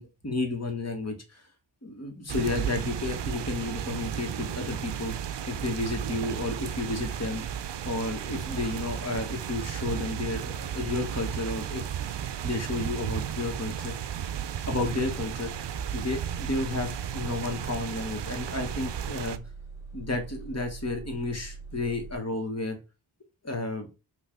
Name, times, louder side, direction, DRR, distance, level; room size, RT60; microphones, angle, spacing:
voice 1, 0.0-1.4 1.8-5.1 5.5-7.4 7.8-11.8 12.4-13.9 14.7-15.5 15.9-19.4 19.9-22.8 23.4-23.9, left 2 dB, 35° left, 3 dB, 2.0 m, -32 dB
sound 1, 2.3-19.4, right 9 dB, 65° right, 0.6 m, -34 dB
sound 2, 14.8-22.1, right 4 dB, 5° right, 3.2 m, -43 dB
5.7 x 3.2 x 5.5 m, 0.30 s
wide cardioid pair, 80°, 45 cm